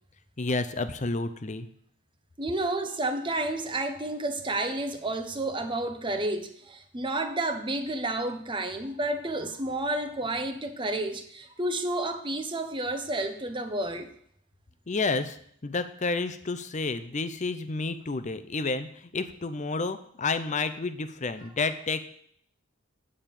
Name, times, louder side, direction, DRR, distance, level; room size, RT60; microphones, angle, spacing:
voice 1, 0.4-1.7 14.9-15.4 15.6-22.0, left 3 dB, 35° left, 11 dB, 0.6 m, -30 dB
voice 2, 2.4-14.1, right 2 dB, 20° right, 7 dB, 0.8 m, -30 dB
9.0 x 5.0 x 7.4 m, 0.64 s
head